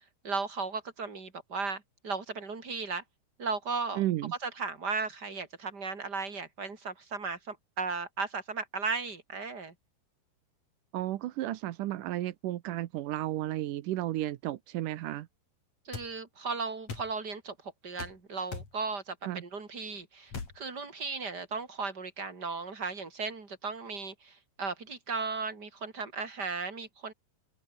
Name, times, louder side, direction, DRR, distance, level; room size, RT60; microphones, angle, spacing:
voice 1, 0.2-3.0 3.4-4.0 4.4-9.7 15.9-17.6 17.8-27.1, right 4 dB, 25° right, 4.1 m, -36 dB
voice 2, 4.0-4.3 10.9-15.3 19.2-19.4, right 14 dB, 85° right, 1.8 m, -33 dB
sound 1, 15.9-16.1 16.9-17.1 18.0-18.2 18.5-18.7 20.3-20.6, left 5 dB, 40° left, 5.3 m, -39 dB
omnidirectional pair, 5.1 m